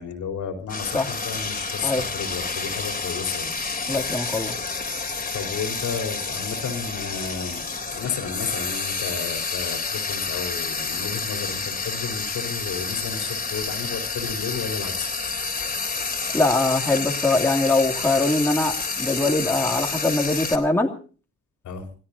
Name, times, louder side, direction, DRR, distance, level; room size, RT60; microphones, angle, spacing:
voice 1, 0.0-3.6 5.3-15.1 21.6-21.8, left 6 dB, 75° left, 4 dB, 4.2 m, -32 dB
Frying (food), 0.7-20.6, left 4 dB, 30° left, 3.4 m, -29 dB
voice 2, 3.9-4.5 16.3-20.9, left 2 dB, 5° left, 0 dB, 2.9 m, -22 dB
27.5 x 17.5 x 2.8 m, 0.39 s
cardioid pair, 90°, 30 cm